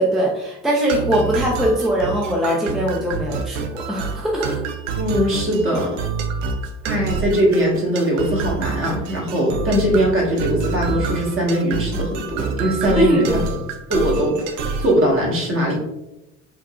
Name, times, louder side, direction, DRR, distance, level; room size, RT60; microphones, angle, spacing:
voice 1, 0.0-4.6 13.0-13.4, equal, ahead, -3 dB, 0.5 m, -21 dB
sound 1, 0.9-15.0, right 5 dB, 90° right, 0.5 m, -27 dB
voice 2, 4.9-5.9 6.8-13.2 13.5-13.6 13.9-15.8, equal, 35° right, -2 dB, 1.4 m, -20 dB
3.6 x 2.7 x 2.3 m, 0.91 s
hypercardioid pair, 75°, 36 cm